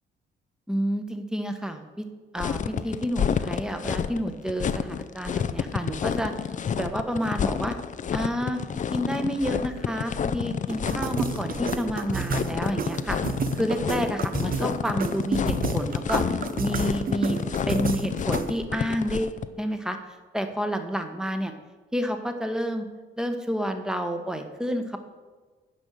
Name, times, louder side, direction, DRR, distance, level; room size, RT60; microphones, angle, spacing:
voice 1, 0.7-2.0 2.3-7.8 8.1-8.6 8.9-13.2 13.5-16.2 16.6-17.4 17.7-20.0 20.3-21.5 21.9-22.8 23.2-25.0, equal, 5° right, 7 dB, 1.1 m, -29 dB
sound 1, 2.4-19.4, left 7 dB, 40° left, 0.5 m, -29 dB
sound 2, 10.7-18.6, right 6 dB, 45° right, 0.7 m, -32 dB
9.7 x 5.3 x 6.4 m, 1.3 s
cardioid pair, 90°, 20 cm